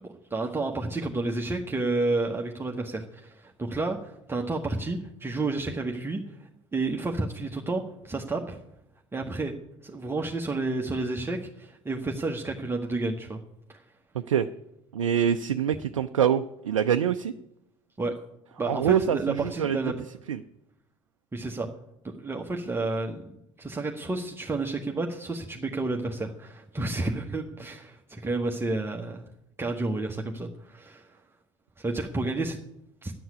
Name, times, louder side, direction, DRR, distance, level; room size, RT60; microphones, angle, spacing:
voice 1, 0.0-8.6 9.1-9.5 9.8-13.4 13.7-13.8 18.0-18.1 18.6-19.9 21.3-21.7 22.0-23.3 23.6-29.3 29.6-31.1 31.8-32.6 33.0-33.1, right 2 dB, 15° right, 1 dB, 1.2 m, -31 dB
voice 2, 14.1-14.5 14.9-17.3 18.7-19.8 20.3-20.4, right 9 dB, 80° right, 9 dB, 0.5 m, -25 dB
11.0 x 7.8 x 9.5 m, 0.82 s
figure-of-eight pair, 65°, 16 cm